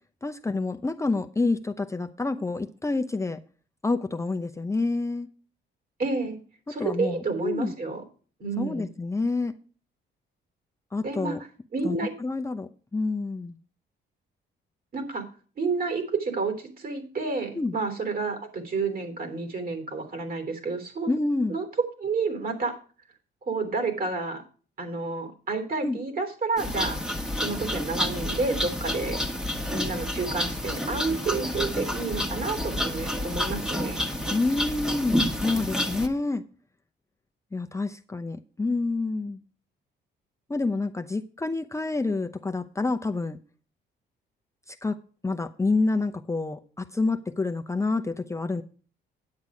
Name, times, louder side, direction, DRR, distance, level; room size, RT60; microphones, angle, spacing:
voice 1, 0.2-3.4 3.8-5.3 6.7-7.7 8.6-9.5 10.9-11.4 11.8-13.6 17.6-17.7 21.1-21.6 25.8-26.0 34.3-36.4 37.5-39.4 40.5-43.4 44.7-45.0 45.2-48.6, left 3 dB, 15° left, 5 dB, 0.7 m, -28 dB
voice 2, 6.0-6.4 6.7-8.0 8.4-8.9 11.0-11.4 11.7-12.1 14.9-15.3 15.6-21.1 21.5-21.6 22.0-22.8 23.4-24.4 24.8-27.0 27.3-29.2 29.7-34.0, right 4 dB, 50° right, 8 dB, 3.4 m, -30 dB
sound 1, 26.6-36.1, left 1 dB, 5° right, 1.4 m, -29 dB
9.5 x 8.1 x 4.9 m, 0.39 s
cardioid pair, 90°, 20 cm